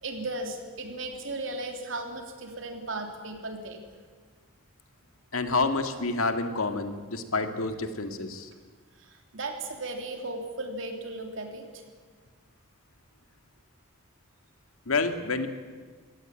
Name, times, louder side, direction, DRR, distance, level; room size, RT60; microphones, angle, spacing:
voice 1, 0.0-3.8 9.0-11.8, right 2 dB, 70° right, 4 dB, 3.4 m, -36 dB
voice 2, 5.3-8.5 14.9-15.5, left 3 dB, 90° left, 7 dB, 2.1 m, -28 dB
23.5 x 17.5 x 9.1 m, 1.5 s
head